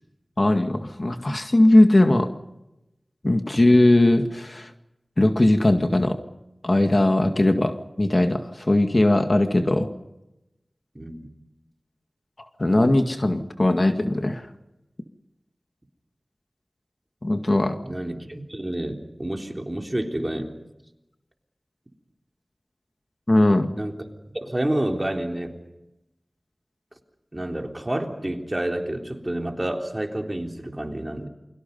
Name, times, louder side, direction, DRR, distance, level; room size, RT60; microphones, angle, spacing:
voice 1, 0.4-2.3 3.2-4.7 5.2-6.2 6.6-9.9 12.6-14.4 17.2-17.8 23.3-23.7, left 1 dB, 45° left, 6 dB, 2.0 m, -19 dB
voice 2, 10.9-11.3 17.8-20.6 23.8-24.0 24.3-25.5 27.3-31.3, right 1 dB, 25° right, 3 dB, 3.7 m, -29 dB
29.0 x 24.0 x 5.5 m, 0.93 s
wide cardioid pair, 55°, 0 cm